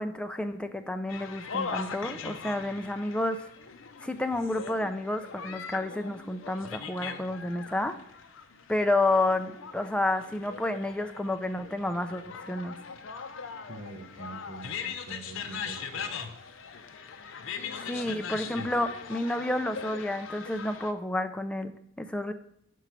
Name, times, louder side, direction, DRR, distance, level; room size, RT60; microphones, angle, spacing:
voice 1, 0.0-3.4 4.0-7.9 8.7-12.8 17.8-22.3, left 2 dB, 5° left, 8 dB, 0.4 m, -30 dB
sound 1, 1.1-20.9, left 6 dB, 70° left, 0.6 m, -40 dB
voice 2, 13.7-16.4 18.0-18.2, right 3 dB, 60° right, 6 dB, 0.8 m, -45 dB
5.0 x 4.6 x 5.6 m, 0.73 s
head